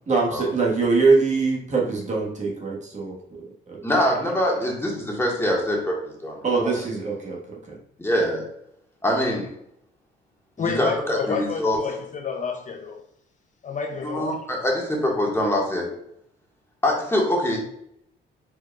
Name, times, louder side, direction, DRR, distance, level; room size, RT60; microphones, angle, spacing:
voice 1, 0.1-3.8 6.4-7.8, right 4 dB, 35° right, 1.4 m, -23 dB
voice 2, 3.8-6.4 8.0-8.4 9.0-9.5 10.6-11.8 14.0-15.9 16.8-17.6, left 1 dB, 10° left, 1.5 m, -24 dB
voice 3, 10.6-13.0 13.6-14.4, left 5 dB, 40° left, 0.5 m, -29 dB
4.6 x 4.5 x 2.3 m
cardioid pair, 90°, 20 cm